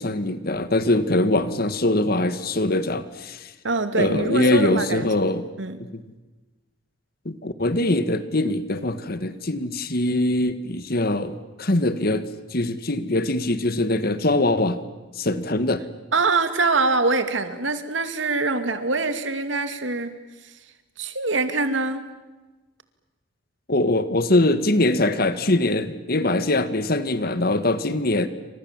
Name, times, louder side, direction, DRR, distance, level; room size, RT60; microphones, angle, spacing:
voice 1, 0.0-3.5 3.9-5.5 5.9-6.0 7.3-12.2 12.5-14.8 15.2-15.8 23.7-28.3, left 2 dB, 55° left, 12 dB, 1.7 m, -22 dB
voice 2, 3.6-5.1 5.6-5.8 16.1-20.2 21.0-22.1, right 3 dB, 80° right, 9 dB, 2.4 m, -24 dB
29.0 x 26.5 x 7.5 m, 1.2 s
head